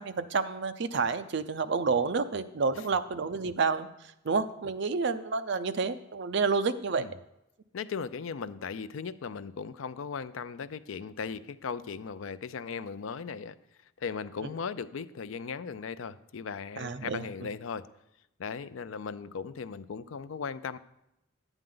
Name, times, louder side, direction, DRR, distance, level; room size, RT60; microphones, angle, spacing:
voice 1, 0.0-3.9 4.2-7.1 16.8-17.3, right 4 dB, 60° right, 0.6 m, -29 dB
voice 2, 7.7-13.6 14.0-17.9 18.4-20.8, left 5 dB, 80° left, 0.5 m, -37 dB
11.0 x 9.0 x 3.8 m
head